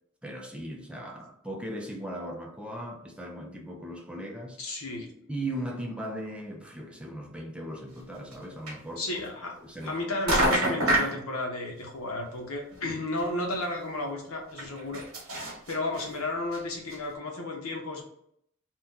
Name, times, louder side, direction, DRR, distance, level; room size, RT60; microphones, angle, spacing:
voice 1, 0.2-4.6 5.3-9.0 9.6-10.0, right 1 dB, 5° right, 0.4 m, -38 dB
voice 2, 4.6-5.1 9.0-9.5 9.8-18.0, left 2 dB, 80° left, 0.9 m, -33 dB
sound 1, 8.3-8.4 8.7-8.8 9.8-10.0 10.3-11.2 12.7-12.8 13.2-13.3 13.5-13.6 14.6-16.1 16.5-16.6 16.9-17.0, right 1 dB, 90° right, 1.1 m, -26 dB
2.8 x 2.2 x 3.6 m
head